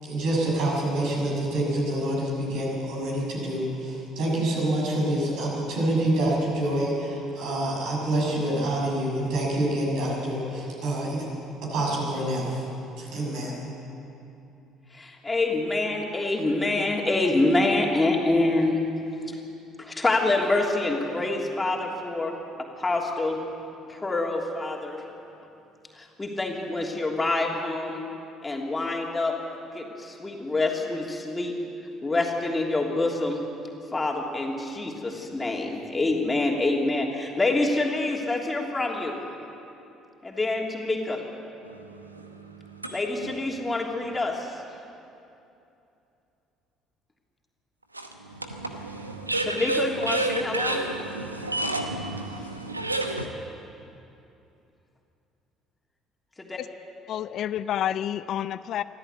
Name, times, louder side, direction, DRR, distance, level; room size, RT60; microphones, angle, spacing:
voice 1, 0.0-11.2 11.6-12.6 13.0-13.6, right 1 dB, 60° right, -3 dB, 6.6 m, -27 dB
voice 2, 14.9-18.8 19.3-19.4 19.8-22.3 22.8-23.4 23.9-25.0 25.9-28.0 28.4-29.3 29.7-31.5 32.0-33.4 33.9-39.2 40.2-41.2 42.9-44.6 49.4-50.9 56.4-56.6, left 2 dB, 20° left, 0 dB, 3.1 m, -26 dB
sound 1, 41.7-43.4 44.0-44.1 47.9-53.3, right 2 dB, 90° right, 0.9 m, -30 dB
voice 3, 57.1-58.8, left 10 dB, 50° left, 15 dB, 0.5 m, -29 dB
24.0 x 14.5 x 8.3 m, 2.8 s
figure-of-eight pair, 55°, 0 cm